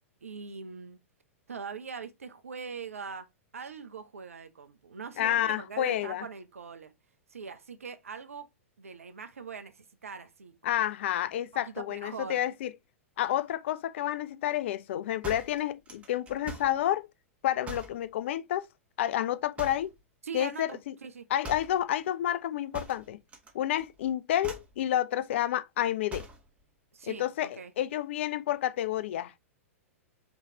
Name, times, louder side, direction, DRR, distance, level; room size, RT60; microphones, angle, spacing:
voice 1, 0.2-1.0 1.5-3.3 3.5-6.9 7.3-8.5 8.8-10.5 11.5-12.4 20.2-21.3 26.9-27.7, right 5 dB, 75° right, 0.8 m, -42 dB
voice 2, 5.2-6.3 10.6-12.7 13.2-17.1 17.4-18.7 19.0-19.9 20.3-20.9 21.3-23.2 23.5-26.3 27.1-29.3, left 12 dB, 55° left, 0.5 m, -30 dB
sound 1, 15.2-16.8 17.6-18.0 19.6-20.0 21.4-21.8 22.7-23.5 23.8-24.1 24.4-24.8 26.1-26.5, right 1 dB, 15° right, 1.3 m, -43 dB
5.3 x 3.2 x 2.8 m
figure-of-eight pair, 100°, 8 cm